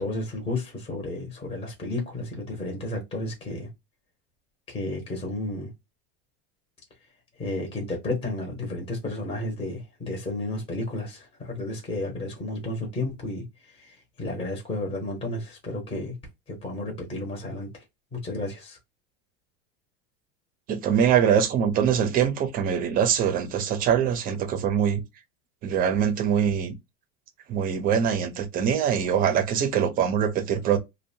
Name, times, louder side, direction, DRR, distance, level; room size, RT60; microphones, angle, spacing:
voice 1, 0.0-3.7 4.7-5.7 7.4-16.2 16.5-17.8 18.1-18.8, left 2 dB, 15° left, 0.8 m, -32 dB
voice 2, 20.7-25.0 25.6-26.7 27.5-30.8, right 8 dB, 30° right, 0.5 m, -23 dB
2.6 x 2.1 x 2.6 m
supercardioid pair, 145°, 31 cm